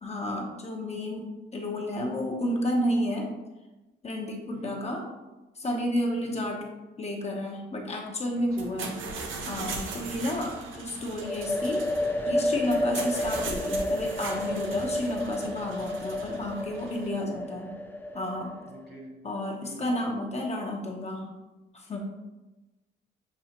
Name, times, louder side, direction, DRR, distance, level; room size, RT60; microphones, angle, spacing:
voice 1, 0.0-3.3 4.0-5.0 5.6-6.6 7.0-9.0 9.4-11.8 12.3-17.7 18.1-18.5 19.2-21.3 21.7-22.0, left 1 dB, 30° left, 0 dB, 0.8 m, -31 dB
voice 2, 4.5-4.9 6.2-6.5 8.3-8.7 10.0-10.3 12.6-13.0 17.1-17.5 18.6-19.1 19.6-20.0, right 1 dB, 50° right, -1 dB, 1.4 m, -46 dB
sound 1, 8.5-17.1, right 4 dB, 80° right, 0.7 m, -39 dB
sound 2, 11.2-18.9, left 1 dB, 10° left, 0.3 m, -31 dB
6.9 x 2.4 x 2.9 m, 1.1 s
cardioid pair, 90°, 20 cm